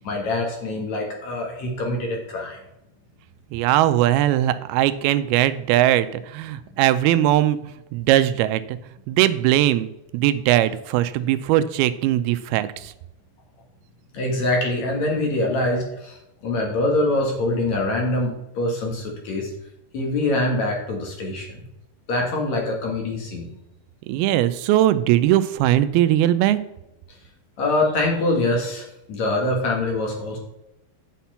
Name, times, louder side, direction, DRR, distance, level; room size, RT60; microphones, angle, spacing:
voice 1, 0.0-2.6 14.1-16.2 16.4-19.5 19.9-21.6 22.1-23.5 27.6-30.4, left 2 dB, 55° left, 0 dB, 2.7 m, -24 dB
voice 2, 3.5-8.8 9.1-12.9 24.1-26.6, right 13 dB, 85° right, 13 dB, 2.4 m, -20 dB
9.2 x 5.9 x 5.6 m, 0.91 s
omnidirectional pair, 4.5 m